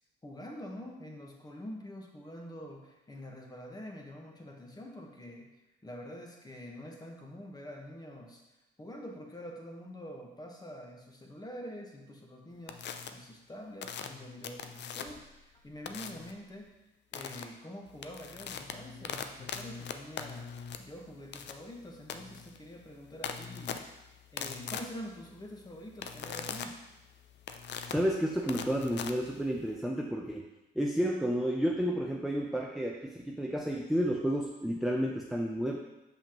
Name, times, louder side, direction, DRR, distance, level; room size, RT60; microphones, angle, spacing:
voice 1, 0.2-5.5 5.8-8.4 8.8-16.7 17.1-20.5 20.8-23.9 24.3-26.8, equal, 20° left, 0 dB, 1.2 m, -46 dB
sound 1, 12.7-13.1 13.8-15.3 15.9-16.3 17.1-17.4 17.9-29.8, left 7 dB, 60° left, 0.5 m, -41 dB
voice 2, 27.9-30.5 30.8-35.8, equal, ahead, 0 dB, 0.6 m, -31 dB
7.1 x 5.6 x 3.0 m, 1.0 s
cardioid pair, 90°, 20 cm